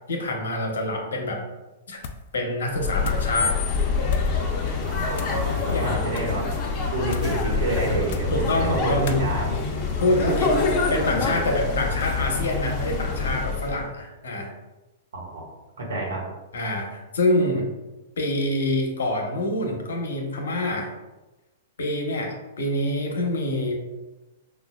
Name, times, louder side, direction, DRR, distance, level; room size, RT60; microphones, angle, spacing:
voice 1, 0.1-1.4 1.9-2.0 2.3-3.6 5.7-6.0 8.3-9.5 10.0-14.5 16.5-17.7 18.2-20.9 21.8-23.7, left 1 dB, 80° left, 2 dB, 0.8 m, -26 dB
sound 1, 2.0-2.4 2.6-3.3 4.0-4.4 5.1-5.5 6.0-6.4 7.1-7.4 8.0-8.4 9.0-9.3, left 5 dB, 60° left, 0.3 m, -39 dB
sound 2, 2.7-13.8, left 4 dB, 35° left, 0.7 m, -26 dB
voice 2, 4.8-6.6 6.9-9.5 15.1-15.4 15.8-16.2, right 2 dB, 80° right, -2 dB, 1.3 m, -29 dB
5.2 x 2.3 x 2.3 m, 1.1 s
hypercardioid pair, 120°, 0 cm